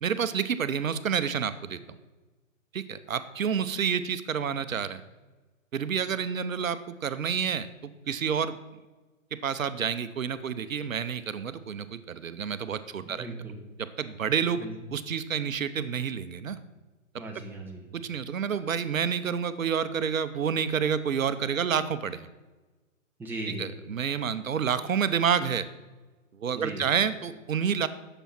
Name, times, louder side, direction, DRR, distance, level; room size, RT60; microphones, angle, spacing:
voice 1, 0.0-1.8 2.7-5.0 5.7-7.7 8.1-8.6 9.4-13.3 13.8-14.6 14.9-16.6 17.9-22.3 23.5-25.7 26.4-27.9, right 7 dB, 80° right, 12 dB, 0.8 m, -29 dB
voice 2, 13.0-13.6 14.6-14.7 17.2-17.9 23.2-23.7 26.5-26.8, right 2 dB, 5° right, -1 dB, 1.4 m, -37 dB
10.0 x 7.0 x 5.9 m, 1.2 s
hypercardioid pair, 135°, 40 cm